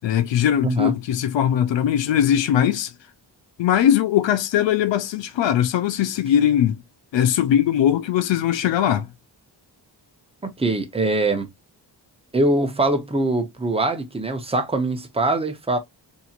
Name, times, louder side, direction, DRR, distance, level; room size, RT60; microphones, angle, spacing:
voice 1, 0.0-2.9 3.6-6.8 7.1-9.1, left 10 dB, 90° left, 0.5 m, -20 dB
voice 2, 0.6-0.9 10.6-11.5 12.3-15.8, right 2 dB, 15° right, 0.7 m, -22 dB
4.2 x 2.8 x 2.4 m
wide cardioid pair, 130°, 43 cm